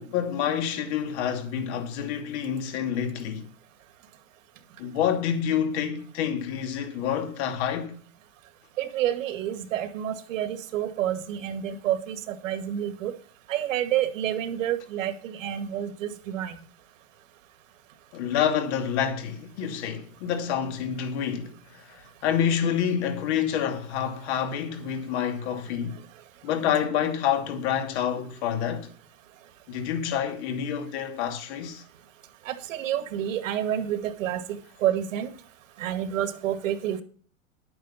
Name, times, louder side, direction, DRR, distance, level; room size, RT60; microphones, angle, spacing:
voice 1, 0.0-3.5 4.8-7.9 18.1-26.0 26.4-28.9 29.7-31.8, left 8 dB, 50° left, 2.6 m, -28 dB
voice 2, 8.8-13.1 13.5-16.5 32.5-34.4 34.8-35.3 35.8-37.0, right 11 dB, 65° right, 2.1 m, -29 dB
11.0 x 8.9 x 5.7 m
hypercardioid pair, 135°, 42 cm